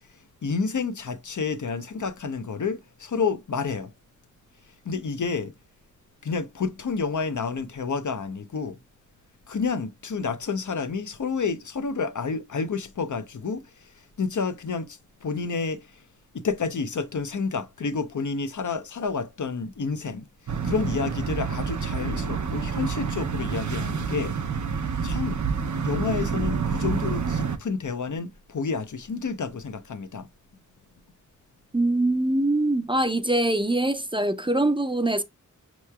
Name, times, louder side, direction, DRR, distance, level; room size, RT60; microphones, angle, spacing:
voice 1, 0.4-3.9 4.8-5.5 6.2-8.8 9.5-13.6 14.2-15.9 16.3-20.3 20.6-24.3 25.0-25.4 25.8-30.3, left 5 dB, 70° left, 0.6 m, -29 dB
sound 1, 20.5-27.6, right 6 dB, 65° right, 0.6 m, -28 dB
voice 2, 31.7-35.2, right 1 dB, 15° right, 0.5 m, -23 dB
5.6 x 3.0 x 2.2 m
wide cardioid pair, 75°, 31 cm